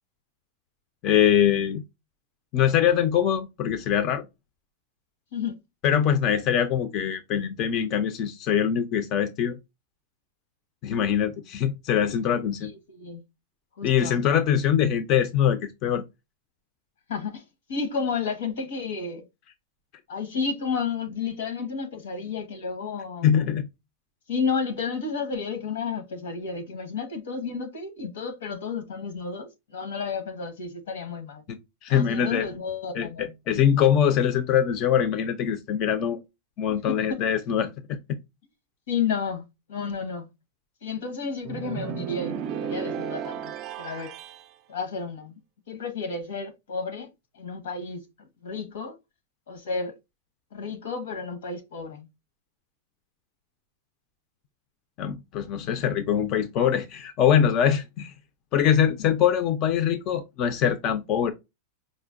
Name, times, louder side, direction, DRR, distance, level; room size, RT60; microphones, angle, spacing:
voice 1, 1.0-1.8 2.5-4.3 5.8-9.6 10.8-12.7 13.8-16.0 23.2-23.7 31.8-32.5 33.0-36.2 36.6-38.2 55.0-58.1 58.5-61.3, left 9 dB, 35° left, 0.4 m, -23 dB
voice 2, 12.6-13.2 13.8-14.2 17.1-17.4 17.7-19.2 20.1-23.3 24.3-31.4 31.9-33.3 36.7-37.2 38.9-40.3 40.8-44.1 44.7-45.4 45.7-49.0 49.5-50.0 50.5-52.1, left 5 dB, 85° left, 1.1 m, -32 dB
sound 1, 41.5-44.5, right 8 dB, 35° right, 0.3 m, -33 dB
4.8 x 2.1 x 2.4 m
supercardioid pair, 160°, 0 cm